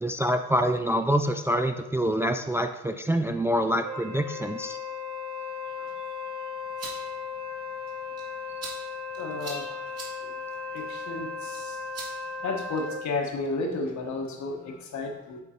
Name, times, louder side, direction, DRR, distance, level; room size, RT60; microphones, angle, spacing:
voice 1, 0.0-4.8, equal, 10° right, 7 dB, 0.3 m, -26 dB
Wind instrument woodwind instrument, 3.8-13.0, left 4 dB, 75° right, 2.4 m, -36 dB
sound 1, 6.5-13.1, right 3 dB, 55° right, 2.0 m, -46 dB
voice 2, 9.2-11.8 12.4-15.4, left 3 dB, 70° left, 2 dB, 1.3 m, -33 dB
8.1 x 3.9 x 4.4 m, 0.96 s
cardioid pair, 90°, 30 cm